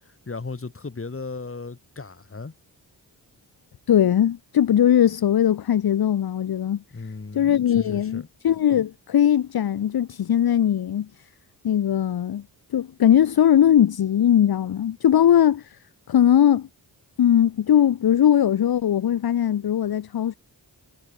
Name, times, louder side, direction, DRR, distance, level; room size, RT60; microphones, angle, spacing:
voice 1, 0.0-2.5 6.9-8.3, left 4 dB, 30° left, 2.0 m, -36 dB
voice 2, 3.9-6.8 7.3-11.3 11.6-15.8 16.1-16.7 17.2-20.3, left 10 dB, 50° left, 0.8 m, -20 dB
supercardioid pair, 40°, 46 cm